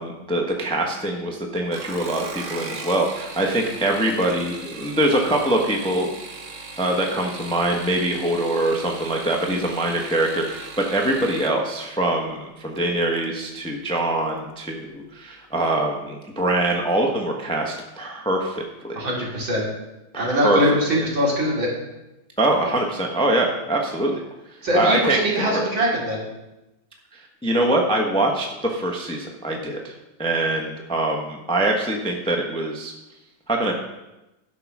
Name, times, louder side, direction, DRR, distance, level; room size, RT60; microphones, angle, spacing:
voice 1, 0.0-6.1 6.8-19.0 20.1-20.6 22.4-24.2 24.7-25.7 27.1-29.9 30.2-32.9 33.5-33.7, right 1 dB, 5° left, 1 dB, 0.9 m, -23 dB
sound 1, 1.6-11.6 12.8-13.3 13.7-14.1 14.4-14.5, right 4 dB, 45° right, 1.2 m, -38 dB
voice 2, 18.9-19.7 20.2-21.7 24.6-26.2, equal, 70° right, -4 dB, 3.6 m, -22 dB
12.5 x 5.9 x 6.1 m, 0.97 s
omnidirectional pair, 2.2 m